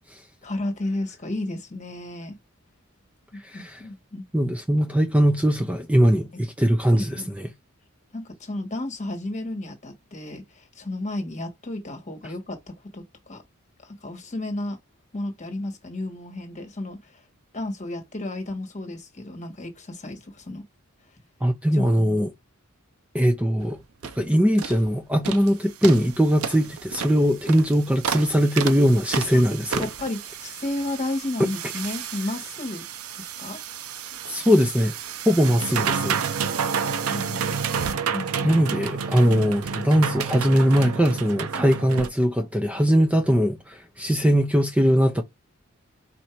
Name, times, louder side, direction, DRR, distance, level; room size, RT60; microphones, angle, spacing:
voice 1, 0.4-2.4 3.3-4.3 7.0-7.3 8.1-13.4 13.8-14.8 15.1-17.2 17.5-20.7 21.7-22.3 29.3-29.5 29.8-32.9 33.1-33.6 37.1-37.6 38.1-38.5, left 2 dB, 35° left, 1.3 m, -33 dB
voice 2, 3.4-3.8 4.3-7.5 21.4-22.3 23.1-23.8 24.2-29.9 34.3-35.0 35.3-36.2 38.4-45.2, equal, 5° right, 0.5 m, -21 dB
sound 1, 23.6-23.7 24.0-24.2 24.6-24.8 25.2-25.5 25.8-42.1, right 6 dB, 85° right, 0.6 m, -30 dB
4.2 x 2.7 x 4.4 m
head